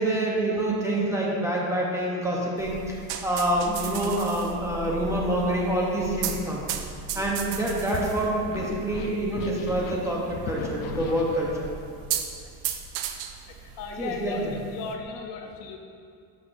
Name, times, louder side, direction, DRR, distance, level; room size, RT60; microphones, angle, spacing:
voice 1, 0.0-2.9 3.2-6.6 7.1-11.7 14.0-14.5, right 1 dB, 5° right, -4 dB, 0.7 m, -26 dB
sound 1, 2.6-15.0, right 7 dB, 60° right, 0.7 m, -36 dB
voice 2, 7.1-7.4 8.5-11.4 12.4-12.5 13.8-15.8, left 5 dB, 50° left, 3 dB, 0.7 m, -37 dB
12.0 x 6.4 x 2.6 m, 2.4 s
cardioid pair, 165°, 42 cm